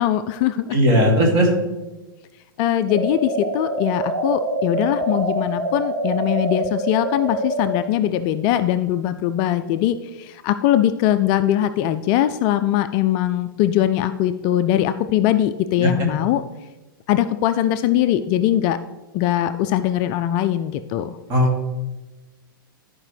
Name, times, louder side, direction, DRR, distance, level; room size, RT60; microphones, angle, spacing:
voice 1, 0.0-0.7 2.6-16.5 17.1-18.8 19.1-21.2, left 12 dB, 35° left, 11 dB, 0.3 m, -21 dB
voice 2, 0.7-1.5 15.8-16.1 21.3-21.6, equal, 35° right, 0 dB, 2.4 m, -17 dB
sound 1, 2.9-7.8, right 1 dB, 75° right, 1.8 m, -25 dB
13.0 x 4.9 x 3.3 m, 1.1 s
figure-of-eight pair, 105°, 12 cm